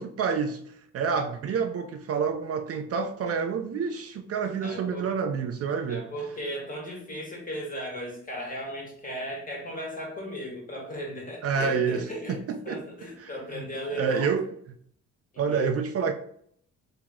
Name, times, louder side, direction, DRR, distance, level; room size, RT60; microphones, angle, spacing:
voice 1, 0.0-6.1 11.4-12.8 13.2-13.6 13.9-14.5 15.4-16.1, right 6 dB, 50° right, 0.4 m, -28 dB
voice 2, 4.6-5.1 5.9-14.3 15.3-15.7, equal, 25° left, 1.4 m, -36 dB
3.0 x 2.8 x 3.6 m
cardioid pair, 90°, 30 cm